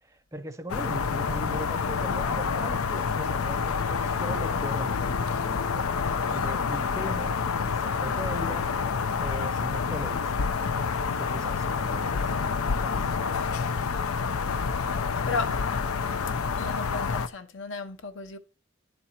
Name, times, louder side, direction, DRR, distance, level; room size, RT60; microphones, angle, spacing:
voice 1, 0.0-5.2 5.5-5.9 6.3-8.7 9.2-10.7 11.2-13.2, right 1 dB, 15° right, 0.6 m, -39 dB
sound 1, 0.7-17.3, left 5 dB, 85° left, 0.5 m, -28 dB
voice 2, 15.2-15.7 16.6-18.4, left 4 dB, 60° left, 0.8 m, -34 dB
10.5 x 4.4 x 4.3 m
head